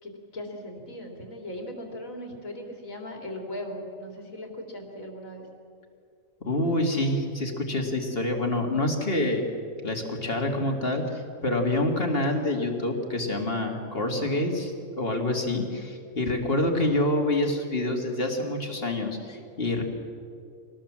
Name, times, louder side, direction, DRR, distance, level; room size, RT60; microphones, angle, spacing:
voice 1, 0.0-5.5, left 1 dB, 70° left, 2 dB, 3.4 m, -38 dB
voice 2, 6.4-9.4 9.8-19.8, left 1 dB, 40° left, 3 dB, 2.4 m, -27 dB
24.5 x 19.0 x 7.5 m, 2.4 s
omnidirectional pair, 1.5 m